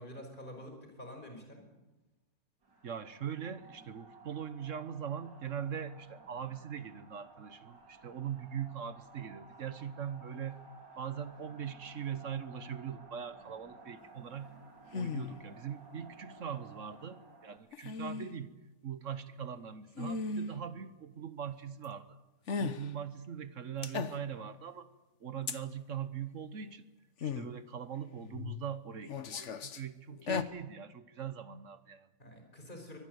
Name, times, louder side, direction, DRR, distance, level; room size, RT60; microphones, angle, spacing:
voice 1, 0.0-1.6 32.2-33.0, left 1 dB, 25° left, 4 dB, 5.3 m, -47 dB
sound 1, 2.6-17.6, right 3 dB, 75° right, 4.0 m, -56 dB
voice 2, 2.8-10.6 11.0-14.5 14.9-18.5 18.8-22.2 22.6-24.9 25.2-26.8 27.2-32.1, right 8 dB, 50° right, 13 dB, 1.1 m, -41 dB
sound 2, 14.9-15.4 17.7-18.3 20.0-20.5 22.5-22.9 23.8-24.4 25.5-25.6 27.2-27.5 28.2-28.7 29.1-29.8 30.1-30.4, left 5 dB, 50° left, 1.2 m, -36 dB
24.0 x 19.5 x 8.0 m, 1.1 s
omnidirectional pair, 1.9 m